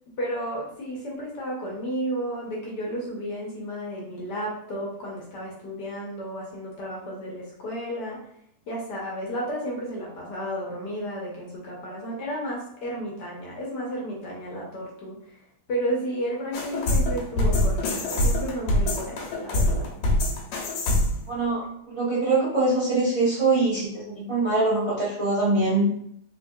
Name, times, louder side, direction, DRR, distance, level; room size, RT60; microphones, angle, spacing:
voice 1, 0.2-8.2 8.7-15.4 15.7-19.9, equal, 60° left, -4 dB, 1.3 m, -32 dB
sound 1, 16.5-21.3, left 1 dB, 85° left, 1.6 m, -24 dB
voice 2, 21.3-25.9, right 2 dB, 30° right, -9 dB, 0.6 m, -23 dB
3.6 x 3.3 x 2.3 m, 0.71 s
omnidirectional pair, 2.3 m